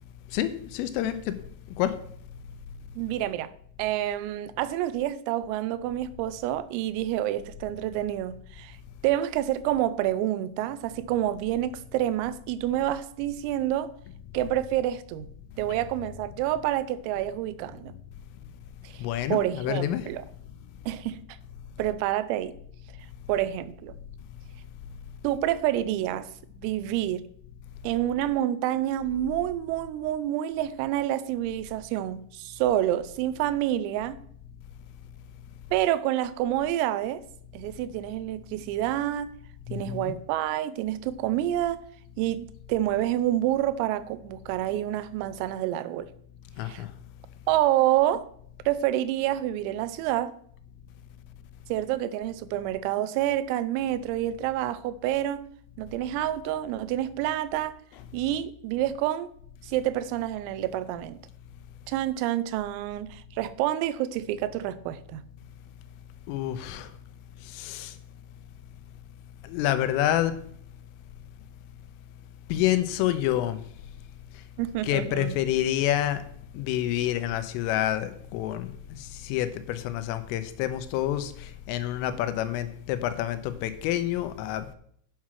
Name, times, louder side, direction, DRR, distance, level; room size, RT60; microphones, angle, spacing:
voice 1, 0.3-1.4 1.8-1.9 19.0-20.1 39.7-40.1 46.6-46.9 66.3-66.9 67.5-67.9 69.4-70.3 72.5-73.6 74.8-76.2 76.5-84.8, left 12 dB, 90° left, 3.3 m, -28 dB
voice 2, 3.0-3.5 3.8-8.8 9.0-13.9 14.3-15.3 15.6-17.9 18.8-20.2 20.9-21.2 21.8-22.5 23.3-24.0 25.2-26.3 26.6-27.2 27.8-34.2 35.7-37.2 37.5-39.3 39.7-41.8 42.2-46.1 46.6-46.9 47.5-48.3 48.7-50.4 51.7-55.4 55.8-57.7 58.1-59.3 59.6-61.2 61.9-65.2 74.6-75.4, right 13 dB, 90° right, 3.4 m, -28 dB
8.5 x 7.5 x 6.2 m
omnidirectional pair, 5.9 m